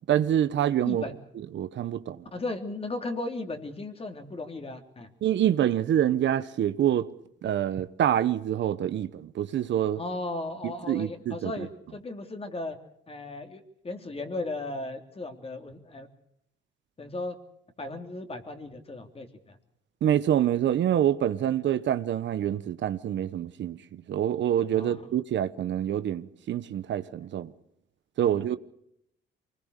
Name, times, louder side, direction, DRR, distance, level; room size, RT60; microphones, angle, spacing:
voice 1, 0.1-1.0 1.4-2.2 5.2-7.1 7.4-10.0 10.6-11.7 20.0-27.5 28.2-28.6, right 10 dB, 65° right, 1.1 m, -26 dB
voice 2, 0.8-1.1 2.3-5.1 9.9-12.8 13.1-16.1 17.0-17.4 17.8-19.6 24.7-25.0 28.2-28.6, left 2 dB, 30° left, 3.2 m, -36 dB
24.5 x 20.5 x 6.7 m
cardioid pair, 90°, 20 cm